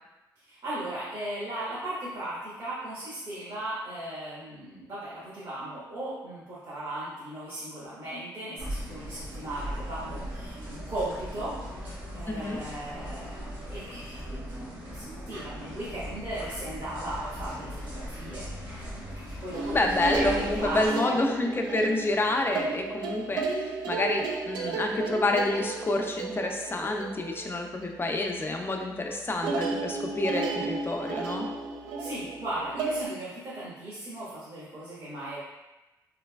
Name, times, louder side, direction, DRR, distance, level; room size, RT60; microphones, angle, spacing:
voice 1, 0.4-11.5 11.8-18.5 19.2-19.7 20.0-21.1 32.0-35.4, right 1 dB, 55° right, -11 dB, 1.4 m, -37 dB
sound 1, 8.6-20.9, equal, 75° right, 1.4 m, -39 dB
voice 2, 12.3-12.6 19.7-31.5, left 2 dB, 30° left, 2 dB, 0.5 m, -28 dB
sound 2, 19.5-28.3 28.6-29.0 29.4-33.1, right 3 dB, 90° right, 0.4 m, -33 dB
3.3 x 3.0 x 2.2 m, 1.0 s
supercardioid pair, 60°, 8 cm